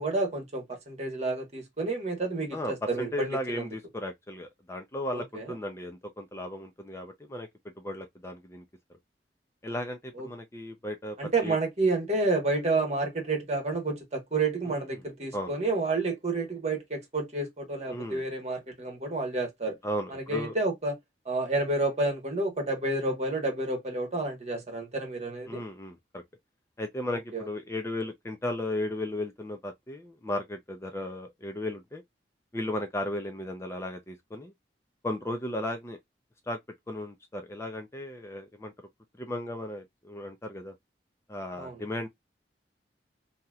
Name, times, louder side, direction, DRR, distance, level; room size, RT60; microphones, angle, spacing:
voice 1, 0.0-3.7 5.1-5.5 10.2-10.3 11.2-19.8 20.1-21.0 21.2-25.6 27.3-27.5 41.6-41.8, right 2 dB, 40° right, 1.3 m, -30 dB
voice 2, 2.5-7.5 7.8-8.6 9.6-11.6 14.7-14.8 15.3-15.5 17.9-18.2 19.8-20.5 25.5-26.2 26.8-32.0 32.5-34.5 35.0-36.0 36.5-36.6 36.9-38.7 39.2-40.7 41.3-42.1, left 1 dB, 15° left, 0.4 m, -35 dB
3.0 x 2.8 x 2.2 m
head